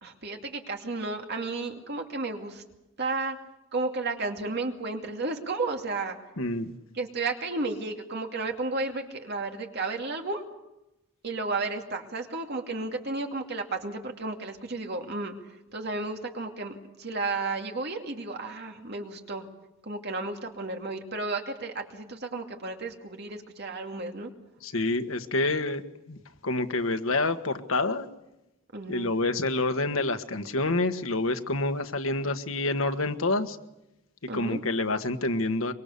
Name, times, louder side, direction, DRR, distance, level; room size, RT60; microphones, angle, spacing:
voice 1, 0.0-2.6 3.0-3.4 3.7-6.2 7.0-10.4 11.2-15.3 15.7-19.5 19.8-24.3 28.7-29.2 34.3-34.6, right 3 dB, 55° right, 3 dB, 2.6 m, -33 dB
voice 2, 6.4-6.8 24.6-25.8 26.1-26.2 26.4-28.1 28.9-33.6 34.3-35.7, left 2 dB, 85° left, 8 dB, 1.5 m, -27 dB
24.5 x 23.0 x 6.8 m, 0.92 s
head